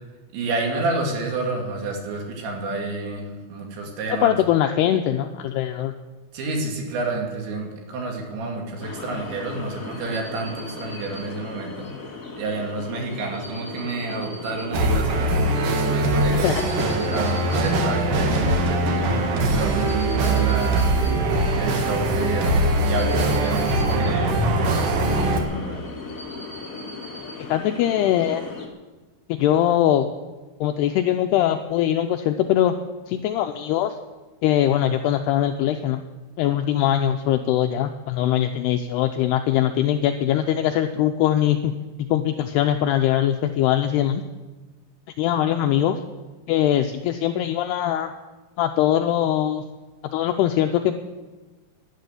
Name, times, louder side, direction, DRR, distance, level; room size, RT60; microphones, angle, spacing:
voice 1, 0.3-4.4 6.3-11.9 12.4-16.5 16.9-19.2 19.5-20.8 21.6-25.9, right 3 dB, 75° right, 1 dB, 4.6 m, -29 dB
voice 2, 4.1-5.9 16.3-16.7 27.4-28.4 29.3-30.1 30.6-32.7 33.1-34.0 34.4-36.0 36.4-41.7 42.0-44.2 45.2-46.0 46.5-48.1 48.6-49.6 50.1-51.1, left 11 dB, 85° left, 6 dB, 2.3 m, -22 dB
sound 1, 8.8-28.7, left 3 dB, 65° left, 0.8 m, -37 dB
sound 2, 14.7-25.4, right 1 dB, 55° right, 2.6 m, -22 dB
12.5 x 11.5 x 9.2 m, 1.2 s
omnidirectional pair, 5.3 m